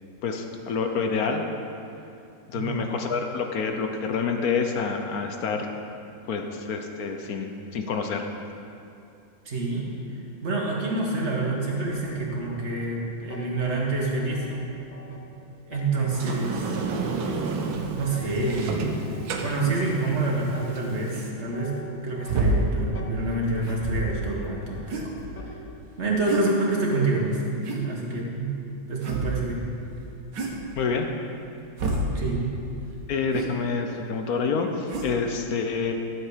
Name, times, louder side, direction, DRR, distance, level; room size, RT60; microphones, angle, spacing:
voice 1, 0.2-1.4 2.5-5.7 6.3-8.3 15.9-16.1 30.8-31.1 33.1-35.9, left 5 dB, 60° left, 5 dB, 1.0 m, -27 dB
voice 2, 9.5-9.9 10.4-14.5 15.7-16.8 17.9-19.1 19.4-25.1 25.4-25.6 26.0-28.5 28.9-29.6 32.1-32.5, right 2 dB, 35° right, -3 dB, 1.8 m, -27 dB
sound 1, 11.9-26.0, left 1 dB, 45° left, 0.5 m, -46 dB
Sliding door, 16.1-21.3, right 4 dB, 85° right, 1.6 m, -31 dB
sound 2, 19.6-19.8 21.1-21.3 22.2-22.6 23.6-24.2 24.9-25.5 26.2-26.5 27.6-27.9 29.0-29.4 30.3-30.7 31.8-32.1 33.3-33.5 34.9-35.1, right 2 dB, 65° right, 1.9 m, -28 dB
12.5 x 8.1 x 5.0 m, 2.6 s
omnidirectional pair, 2.2 m